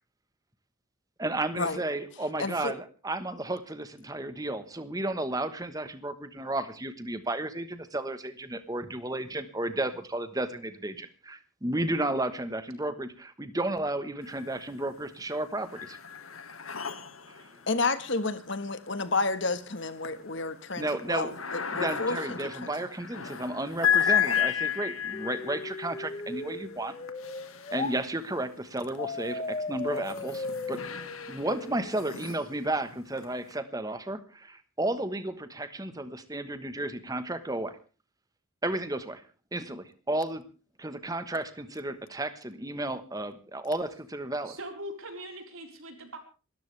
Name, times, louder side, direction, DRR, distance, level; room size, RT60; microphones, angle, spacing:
voice 1, 1.2-16.0 17.3-17.4 20.8-21.4 21.7-26.9 27.7-30.8 31.3-37.8 38.6-39.2 39.5-40.4 40.8-44.6, right 1 dB, 15° right, 1.3 m, -33 dB
voice 2, 2.4-2.7 17.7-22.7, left 3 dB, 60° left, 1.5 m, -31 dB
sound 1, 14.2-14.9 15.2-28.4 29.1-33.5, left 8 dB, 85° left, 1.9 m, -34 dB
sound 2, 25.1-28.0 29.0-32.0, left 3 dB, 30° left, 0.9 m, -37 dB
voice 3, 44.4-46.2, right 1 dB, 80° right, 4.4 m, -41 dB
26.5 x 13.5 x 3.4 m
head